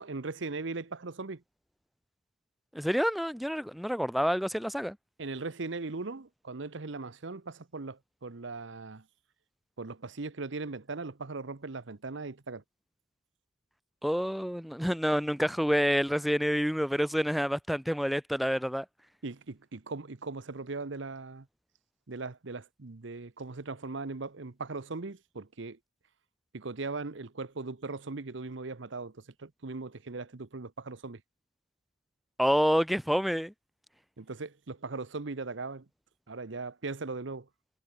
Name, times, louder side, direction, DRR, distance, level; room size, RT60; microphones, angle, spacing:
voice 1, 0.0-1.4 5.2-9.0 9.8-12.6 19.2-21.5 22.1-25.8 26.5-31.2 34.2-35.9 36.3-37.5, right 3 dB, 65° right, 0.9 m, -39 dB
voice 2, 2.7-5.0 14.0-18.9 32.4-33.5, equal, ahead, 0.7 m, -28 dB
head